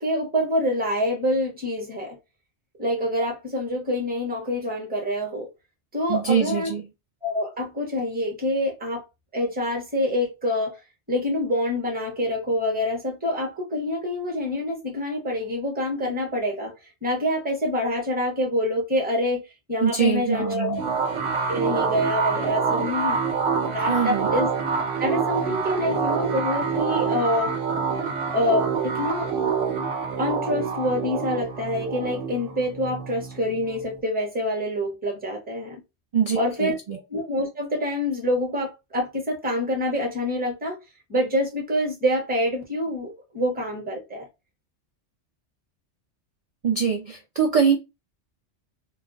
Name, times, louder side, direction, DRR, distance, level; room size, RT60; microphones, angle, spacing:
voice 1, 0.0-2.2 2.8-5.5 5.9-6.7 7.2-9.0 9.3-10.8 11.1-16.7 17.0-19.4 19.7-20.8 21.5-23.2 23.7-24.5 25.0-27.5 28.3-29.3 30.2-35.8 36.4-36.8 37.1-40.8 41.1-44.2, left 1 dB, 10° right, 0.7 m, -26 dB
voice 2, 6.1-6.9 19.8-20.8 23.8-24.4 36.1-37.0 46.6-47.8, right 6 dB, 55° right, 0.4 m, -23 dB
sound 1, 20.8-34.0, right 5 dB, 85° right, 0.9 m, -26 dB
2.3 x 2.1 x 3.7 m
omnidirectional pair, 1.2 m